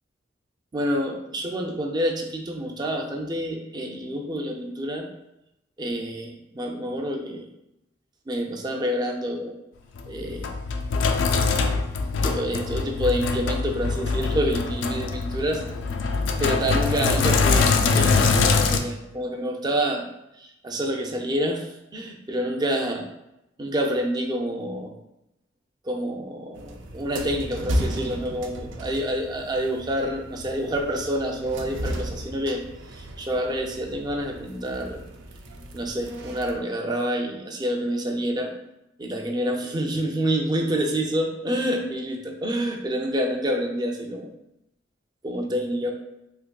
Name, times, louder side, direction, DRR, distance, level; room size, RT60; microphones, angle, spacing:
voice 1, 0.7-5.1 5.8-7.5 8.3-9.5 10.1-10.5 12.2-15.6 16.4-20.0 20.4-21.7 21.9-23.1 23.6-24.9 25.8-32.6 32.9-35.0 35.7-38.5 39.0-44.3 45.2-45.9, equal, 25° right, 1 dB, 0.4 m, -27 dB
Sink (filling or washing), 10.0-18.8, left 4 dB, 80° left, 0.3 m, -23 dB
sound 1, 26.5-36.6, equal, 85° right, 0.4 m, -34 dB
3.5 x 2.9 x 2.2 m, 0.86 s
head